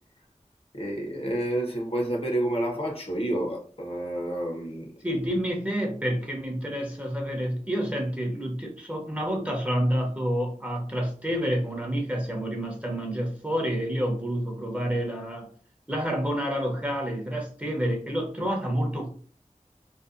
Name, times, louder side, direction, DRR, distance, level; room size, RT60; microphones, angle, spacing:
voice 1, 0.7-5.2, right 1 dB, 50° left, 0.8 m, -29 dB
voice 2, 5.0-15.5 15.9-19.1, equal, 10° right, 0.8 m, -28 dB
2.6 x 2.2 x 2.4 m
wide cardioid pair, 45°, 13 cm